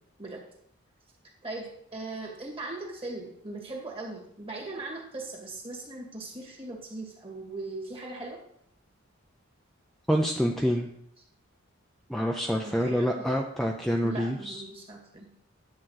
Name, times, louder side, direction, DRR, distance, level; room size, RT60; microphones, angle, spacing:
voice 1, 1.4-8.4 12.6-13.3 14.0-15.3, right 2 dB, 30° right, 0 dB, 2.1 m, -39 dB
voice 2, 10.1-10.9 12.1-14.6, equal, ahead, 0 dB, 0.6 m, -27 dB
10.5 x 7.5 x 4.0 m, 0.68 s
head